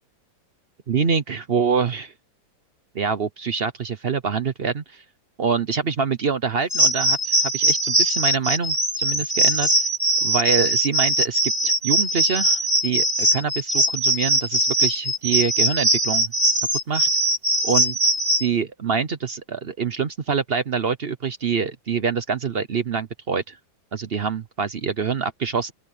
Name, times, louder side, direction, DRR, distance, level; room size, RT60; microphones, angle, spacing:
voice 1, 0.9-2.1 2.9-5.0 5.4-9.9 10.2-16.3 16.9-17.1 17.6-18.0 18.4-23.6 23.9-25.7, right 6 dB, 50° right, 0.7 m, -25 dB
sound 1, 6.7-18.5, right 1 dB, 10° right, 3.1 m, -21 dB
open air
omnidirectional pair, 2.1 m